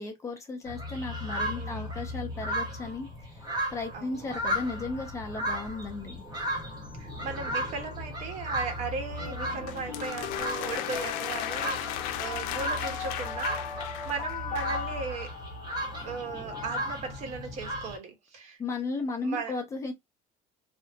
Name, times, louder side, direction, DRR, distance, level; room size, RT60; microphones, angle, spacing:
voice 1, 0.0-6.2 18.6-19.9, left 3 dB, 20° left, 0.7 m, -35 dB
sound 1, 0.7-18.0, equal, 30° right, 1.0 m, -35 dB
voice 2, 1.5-1.9 3.9-4.2 7.0-11.8 12.2-15.3 16.0-18.6 19.2-19.6, right 5 dB, 50° right, 0.9 m, -37 dB
sound 2, 9.2-16.2, left 7 dB, 60° left, 0.9 m, -38 dB
sound 3, 9.7-14.8, left 12 dB, 80° left, 0.4 m, -37 dB
3.3 x 2.0 x 2.8 m
cardioid pair, 170°, 15 cm